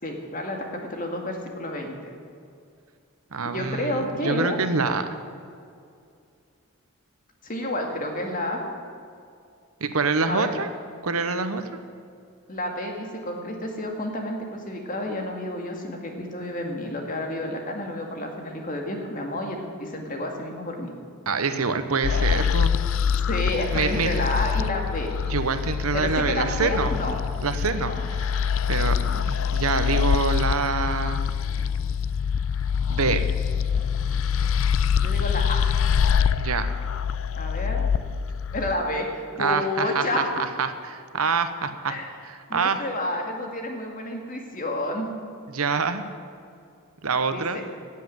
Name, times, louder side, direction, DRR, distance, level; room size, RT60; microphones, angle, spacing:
voice 1, 0.0-2.0 3.4-4.6 7.4-8.6 10.3-10.5 12.5-20.9 23.3-25.1 25.9-27.2 27.8-28.0 35.0-35.7 37.4-37.9 38.5-40.3 41.9-42.1 42.5-45.1 47.3-47.6, left 1 dB, 35° left, 2 dB, 2.1 m, -30 dB
voice 2, 3.3-5.1 9.8-10.7 11.0-11.6 21.3-22.7 23.7-24.2 25.3-27.0 27.4-31.3 32.9-33.2 36.4-36.7 39.4-40.1 40.6-42.0 42.2-42.8 45.5-46.0 47.0-47.6, right 4 dB, 75° right, 9 dB, 1.0 m, -26 dB
Drone Wet, 22.0-38.7, left 7 dB, 65° left, 0.4 m, -25 dB
16.5 x 7.5 x 9.5 m, 2.4 s
head